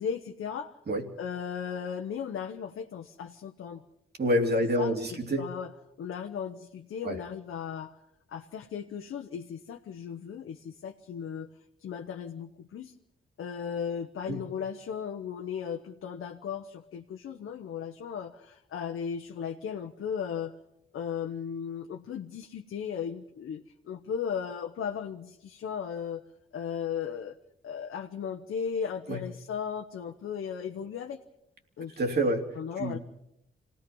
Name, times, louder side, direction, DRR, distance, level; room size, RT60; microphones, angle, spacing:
voice 1, 0.0-0.8 1.2-3.8 4.8-5.7 6.0-8.0 8.3-11.5 11.8-12.9 13.4-20.5 20.9-26.2 26.5-27.4 27.6-31.2 31.8-32.0 32.6-33.0, left 7 dB, 80° left, 4 dB, 1.0 m, -36 dB
voice 2, 4.2-5.5 7.0-7.2 14.3-14.4 29.1-29.2 32.0-32.5 32.8-33.0, equal, 50° right, 3 dB, 3.0 m, -27 dB
26.5 x 18.0 x 5.5 m, 0.77 s
cardioid pair, 80°, 21 cm